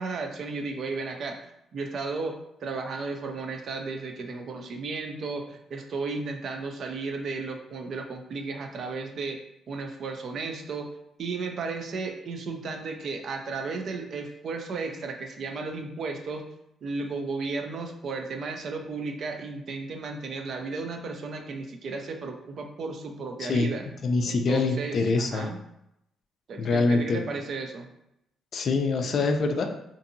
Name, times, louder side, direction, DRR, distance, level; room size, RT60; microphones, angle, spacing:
voice 1, 0.0-1.4 1.7-9.4 9.7-10.9 11.2-16.5 16.8-23.9 24.2-25.6 26.5-27.9, right 4 dB, 60° right, 4 dB, 0.4 m, -34 dB
voice 2, 23.4-23.7 24.0-25.5 26.6-27.2 28.5-29.7, left 3 dB, 55° left, 5 dB, 0.4 m, -24 dB
2.6 x 2.5 x 2.6 m, 0.82 s
cardioid pair, 90°, 0 cm